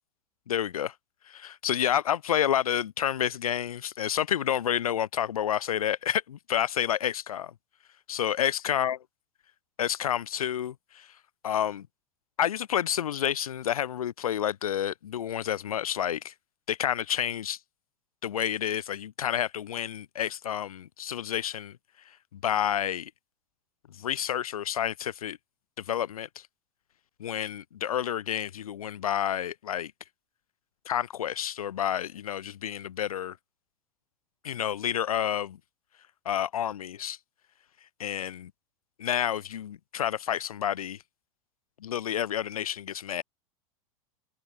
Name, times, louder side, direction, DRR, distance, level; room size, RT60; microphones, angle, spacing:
voice 1, 0.5-0.9 1.3-7.5 8.1-9.0 9.8-11.1 11.4-11.9 12.4-16.3 16.7-17.6 18.2-21.8 22.3-23.1 24.0-25.4 25.9-26.3 27.2-29.9 30.9-33.4 34.4-35.6 36.3-37.2 38.0-38.5 39.0-41.0 41.8-43.2, left 10 dB, 90° left, 0.5 m, -29 dB
hypercardioid pair, 95°, 18 cm